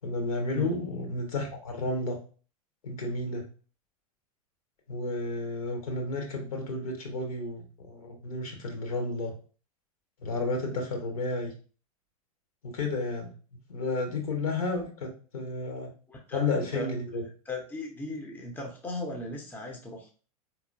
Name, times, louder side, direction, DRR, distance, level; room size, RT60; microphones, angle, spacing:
voice 1, 0.0-2.2 2.8-3.4 4.9-9.3 10.2-11.5 12.6-13.3 13.7-15.9 16.3-17.2, left 2 dB, 65° left, 3 dB, 1.3 m, -32 dB
voice 2, 16.1-16.9 17.5-20.1, left 2 dB, 10° left, 2 dB, 0.7 m, -37 dB
4.3 x 2.9 x 2.6 m, 0.37 s
figure-of-eight pair, 90°, 19 cm